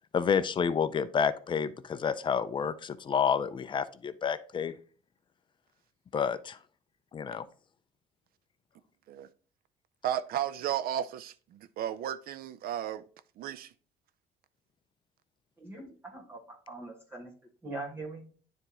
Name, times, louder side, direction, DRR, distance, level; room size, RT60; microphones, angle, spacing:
voice 1, 0.1-4.8 6.1-6.6 7.1-7.5, left 7 dB, 30° left, 0.4 m, -29 dB
voice 2, 10.0-13.1 13.4-13.7, right 11 dB, 60° right, 0.5 m, -34 dB
voice 3, 15.6-17.3 17.6-18.2, right 2 dB, 15° right, 1.6 m, -42 dB
9.5 x 3.4 x 2.9 m
cardioid pair, 110°, 17 cm